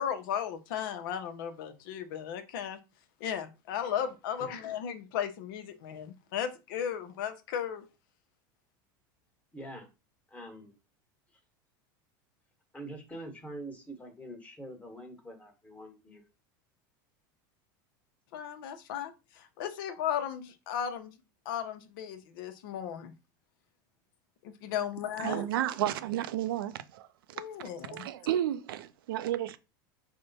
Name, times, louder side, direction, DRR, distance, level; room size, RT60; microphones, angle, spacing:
voice 1, 0.0-2.8 3.2-7.8 18.3-21.1 21.5-23.1 24.4-25.4 27.3-28.1, left 9 dB, 70° left, 0.6 m, -35 dB
voice 2, 9.5-9.9 10.3-10.8 12.7-16.2 25.3-25.5, right 1 dB, 10° left, 1.1 m, -44 dB
voice 3, 25.2-27.1 27.9-29.6, right 12 dB, 85° right, 0.4 m, -32 dB
3.5 x 2.1 x 4.0 m
supercardioid pair, 105°, 11 cm